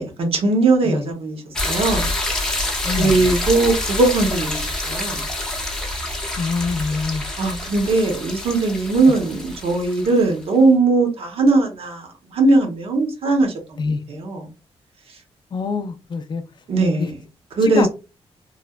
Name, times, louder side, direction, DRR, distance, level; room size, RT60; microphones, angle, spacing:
voice 1, 0.0-2.1 3.0-5.3 7.4-13.8 14.1-14.5 16.7-17.2 17.6-17.9, right 3 dB, 65° right, 0.9 m, -19 dB
sound 1, 1.5-10.4, left 2 dB, 5° left, 0.7 m, -27 dB
voice 2, 2.8-3.3 6.4-7.2 13.8-14.0 15.5-16.4 17.0-17.1 17.6-17.9, left 4 dB, 45° left, 0.4 m, -24 dB
3.1 x 2.1 x 2.3 m
wide cardioid pair, 125°, 11 cm